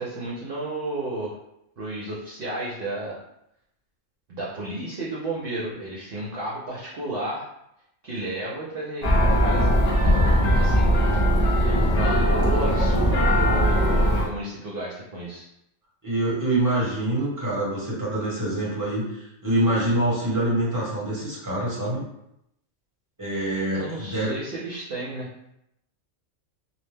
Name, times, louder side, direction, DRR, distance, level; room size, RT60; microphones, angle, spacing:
voice 1, 0.0-1.3 1.8-3.2 4.3-7.5 8.0-9.7 10.0-10.9 11.6-15.4 23.7-25.3, right 1 dB, 60° right, -6 dB, 0.7 m, -32 dB
sound 1, 9.0-14.3, equal, 45° left, 0.5 m, -20 dB
voice 2, 16.0-22.0 23.2-24.3, right 1 dB, 15° right, -6 dB, 1.0 m, -25 dB
2.7 x 2.1 x 3.2 m, 0.81 s
omnidirectional pair, 1.3 m